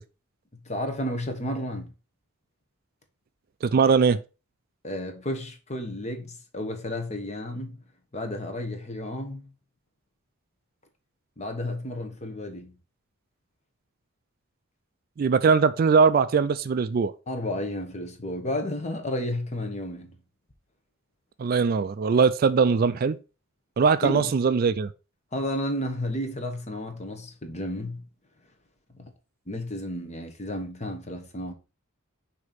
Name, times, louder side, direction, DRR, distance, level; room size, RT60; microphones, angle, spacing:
voice 1, 0.6-1.9 4.8-7.8 8.1-9.5 11.4-12.7 17.3-20.2 24.0-24.3 25.3-28.0 28.9-29.1 29.5-31.5, left 1 dB, 30° left, 1.0 m, -32 dB
voice 2, 3.7-4.2 15.2-17.1 21.4-23.2 23.8-24.9, right 5 dB, 45° right, 0.3 m, -21 dB
6.4 x 2.9 x 5.1 m
head